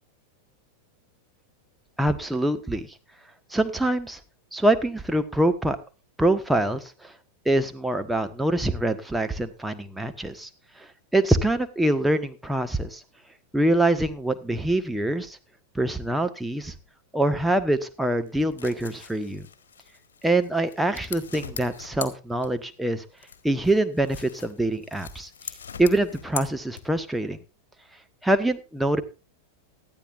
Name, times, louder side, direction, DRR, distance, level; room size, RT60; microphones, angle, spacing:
voice 1, 2.0-2.9 3.5-4.2 4.5-5.8 6.2-7.1 7.4-10.5 11.1-13.0 13.5-15.4 15.7-16.7 17.1-19.4 20.2-23.0 23.4-25.3 25.8-27.4 28.2-29.0, right 1 dB, 5° right, 7 dB, 1.3 m, -24 dB
sound 1, 18.3-22.8 23.2-27.2, left 7 dB, 65° left, 1.7 m, -41 dB
19.0 x 13.0 x 2.5 m, 0.31 s
figure-of-eight pair, 90°, 0 cm